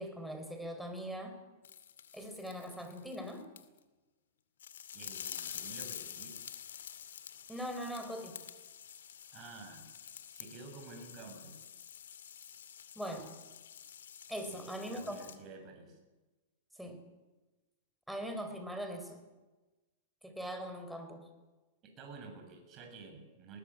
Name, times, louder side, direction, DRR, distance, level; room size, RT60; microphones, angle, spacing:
voice 1, 0.0-1.4 2.1-3.5 7.5-8.4 13.0-13.3 14.3-15.3 16.8-17.0 18.1-19.2 20.2-21.3, equal, ahead, 6 dB, 4.1 m, -41 dB
sound 1, 1.6-3.8 4.6-15.4, left 9 dB, 85° left, 2.3 m, -48 dB
voice 2, 4.9-6.4 9.3-9.9 10.3-11.7 14.5-16.0 21.8-23.6, right 3 dB, 30° right, 4 dB, 6.9 m, -50 dB
20.5 x 19.0 x 9.0 m, 1.2 s
hypercardioid pair, 135°, 0 cm